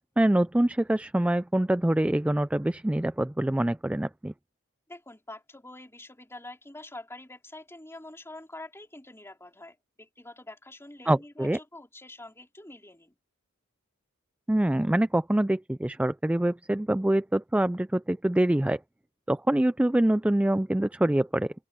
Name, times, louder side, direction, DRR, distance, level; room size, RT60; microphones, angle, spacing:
voice 1, 0.2-4.3 11.1-11.6 14.5-18.8 19.3-21.5, right 1 dB, 5° right, 0.3 m, -25 dB
voice 2, 4.9-13.2, left 2 dB, 10° left, 3.8 m, -46 dB
open air
head